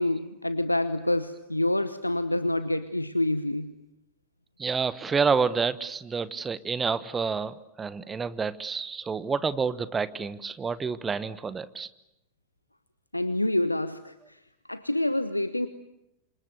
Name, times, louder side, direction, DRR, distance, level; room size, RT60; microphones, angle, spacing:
voice 1, 0.0-3.7 13.1-14.4 14.7-15.7, left 1 dB, 85° left, 13 dB, 1.0 m, -27 dB
voice 2, 4.6-11.9, right 5 dB, 15° right, 16 dB, 1.2 m, -28 dB
28.0 x 27.0 x 8.0 m, 0.87 s
figure-of-eight pair, 90°, 0 cm